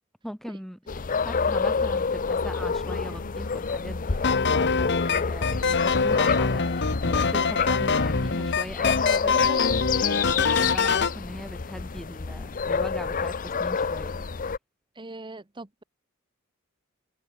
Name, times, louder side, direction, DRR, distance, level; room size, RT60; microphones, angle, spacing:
voice 1, 0.2-14.3, equal, ahead, 2.5 m, -40 dB
sound 1, 0.9-14.6, left 5 dB, 40° left, 0.6 m, -28 dB
sound 2, 2.8-9.0, left 1 dB, 75° left, 3.7 m, -47 dB
sound 3, 4.2-11.2, left 4 dB, 55° left, 1.3 m, -24 dB
voice 2, 14.9-15.8, right 2 dB, 25° right, 1.1 m, -41 dB
head